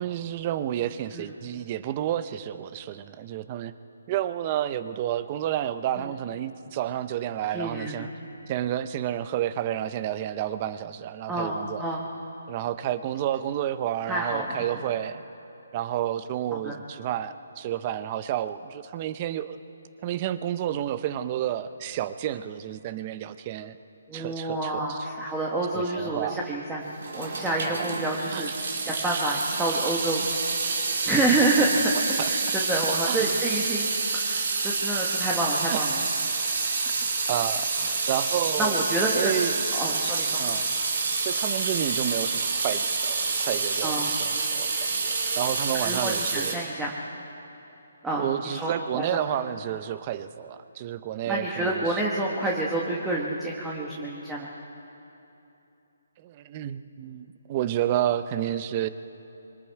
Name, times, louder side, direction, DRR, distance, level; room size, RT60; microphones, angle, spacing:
voice 1, 0.0-3.7 4.1-8.1 8.5-11.8 12.5-15.2 15.7-19.6 20.0-23.8 24.1-25.0 25.7-26.4 27.6-27.7 28.3-28.4 32.2-32.3 33.1-33.3 35.7-35.8 36.8-37.0 37.3-38.8 39.2-39.5 40.4-40.8 41.2-44.7 45.0-46.7 48.2-52.0 56.2-58.9, right 11 dB, 20° right, 13 dB, 0.6 m, -30 dB
voice 2, 7.5-8.1 11.3-12.0 14.1-14.8 16.6-16.8 24.1-26.8 27.1-28.5 28.8-30.2 30.6-31.9 32.2-36.1 38.6-40.4 43.8-44.1 45.8-46.9 48.0-49.2 51.3-54.5, right 2 dB, 5° right, -4 dB, 1.2 m, -28 dB
Water tap faucet / Sink (filling or washing) / Drip, 26.9-46.5, right 4 dB, 65° right, 3.7 m, -28 dB
25.5 x 24.0 x 4.7 m, 2.9 s
hypercardioid pair, 170°, 0 cm